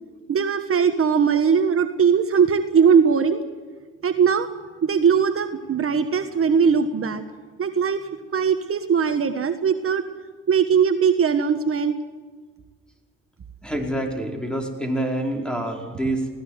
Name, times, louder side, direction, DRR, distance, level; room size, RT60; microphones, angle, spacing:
voice 1, 0.3-3.4 4.0-4.5 4.8-7.2 7.6-8.0 8.3-10.0 10.5-12.0, right 6 dB, 45° right, 7 dB, 1.4 m, -20 dB
voice 2, 13.6-16.3, right 1 dB, 5° left, 1 dB, 5.0 m, -26 dB
20.5 x 17.5 x 8.1 m, 1.5 s
cardioid pair, 90°, 30 cm